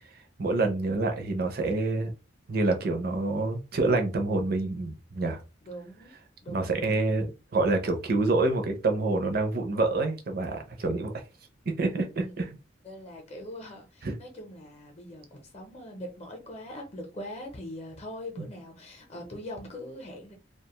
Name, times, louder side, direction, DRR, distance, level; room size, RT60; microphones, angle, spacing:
voice 1, 0.4-2.1 2.5-5.4 6.5-7.3 7.5-11.1 11.7-12.5 14.0-14.2 18.4-18.5, right 2 dB, 55° right, 0.6 m, -27 dB
voice 2, 5.6-6.1 6.4-7.2 12.2-12.5 12.8-20.3, left 1 dB, 35° left, 0.6 m, -42 dB
2.4 x 2.2 x 2.9 m
head